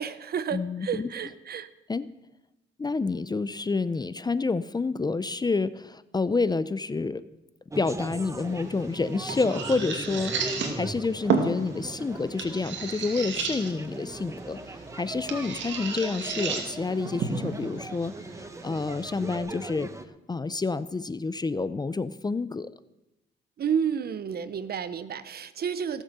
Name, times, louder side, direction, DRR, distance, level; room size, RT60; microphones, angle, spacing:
voice 1, 0.0-1.7 23.6-26.0, right 7 dB, 50° right, 14 dB, 0.9 m, -30 dB
voice 2, 0.5-1.1 1.9-2.1 2.8-7.2 7.8-10.3 10.7-14.6 14.9-18.1 18.6-19.9 20.3-22.7, left 3 dB, 20° left, 15 dB, 0.5 m, -28 dB
sound 1, 7.7-20.0, right 2 dB, 15° right, 1.1 m, -39 dB
sound 2, 8.4-19.4, right 5 dB, 70° right, 2.4 m, -34 dB
17.5 x 7.5 x 6.8 m, 0.95 s
cardioid pair, 90°, 20 cm